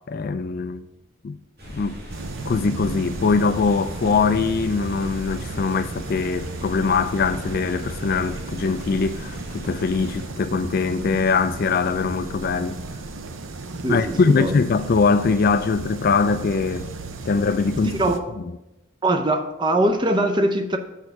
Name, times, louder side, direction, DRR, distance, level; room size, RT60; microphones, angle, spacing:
voice 1, 0.1-0.9 1.2-1.4 1.7-2.0 2.5-12.8 13.9-16.9 17.3-17.9, left 4 dB, 45° left, 0.3 m, -22 dB
sound 1, 1.6-10.3, equal, 50° right, 2.5 m, -39 dB
sound 2, 2.1-18.2, right 3 dB, 70° right, 0.6 m, -35 dB
voice 2, 13.8-14.5 17.8-18.3 19.0-20.8, right 1 dB, 20° right, 0.6 m, -22 dB
6.4 x 5.3 x 5.9 m
head